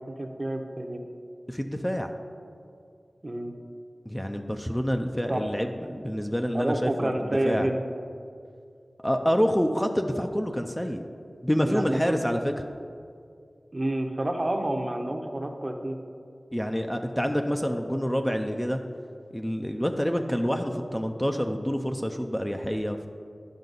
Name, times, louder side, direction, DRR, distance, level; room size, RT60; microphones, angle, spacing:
voice 1, 0.2-1.0 3.2-3.6 5.3-5.5 6.5-7.8 11.6-12.2 13.7-16.0, right 1 dB, 35° right, 4 dB, 0.7 m, -29 dB
voice 2, 1.5-2.1 4.1-7.7 9.0-11.0 11.4-12.5 16.5-18.8 19.3-23.0, equal, 10° left, 4 dB, 0.4 m, -27 dB
10.5 x 5.4 x 3.9 m, 2.3 s
wide cardioid pair, 70°, 0 cm